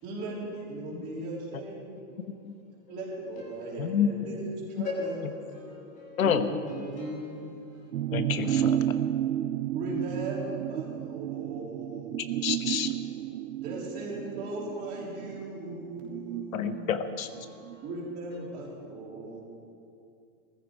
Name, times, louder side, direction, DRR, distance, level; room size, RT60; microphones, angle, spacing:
voice 1, 0.0-2.4 2.9-5.3 6.2-8.6 9.7-12.3 13.6-17.0 17.8-19.4, right 2 dB, 25° right, -4 dB, 3.6 m, -38 dB
voice 2, 2.9-3.7 4.8-6.2 6.8-7.9 17.4-17.8, left 3 dB, 20° left, -2 dB, 1.5 m, -40 dB
voice 3, 3.8-4.1 4.8-4.9 6.2-6.5 8.1-8.8 12.4-12.9 16.5-17.3, left 8 dB, 75° left, 9 dB, 1.1 m, -28 dB
sound 1, 7.9-17.8 18.1-18.2, right 11 dB, 85° right, 0.6 m, -32 dB
18.0 x 14.5 x 4.9 m, 2.4 s
hypercardioid pair, 155°, 42 cm